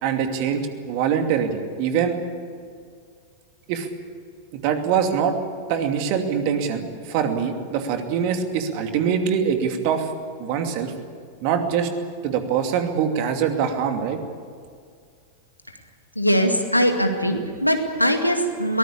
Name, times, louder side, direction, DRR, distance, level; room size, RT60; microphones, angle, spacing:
voice 1, 0.0-2.2 3.7-3.9 4.5-5.3 5.7-10.1 10.4-10.9 11.4-11.9 12.2-14.2, right 7 dB, 45° right, 6 dB, 2.6 m, -23 dB
voice 2, 16.2-18.8, equal, 90° left, 5 dB, 2.2 m, -21 dB
23.0 x 19.0 x 8.6 m, 2.1 s
figure-of-eight pair, 90°, 0 cm